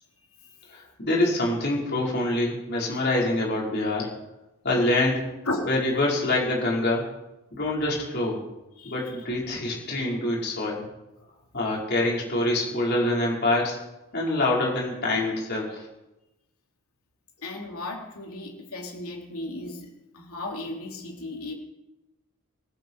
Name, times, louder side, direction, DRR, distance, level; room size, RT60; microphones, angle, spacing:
voice 1, 0.7-4.1 4.6-5.2 5.6-7.1 7.5-8.4 8.8-10.8 11.5-13.8 14.1-15.9, left 2 dB, 50° left, -3 dB, 5.3 m, -25 dB
voice 2, 17.4-21.5, left 2 dB, 80° left, 1 dB, 3.4 m, -35 dB
19.5 x 15.0 x 4.9 m, 0.97 s
head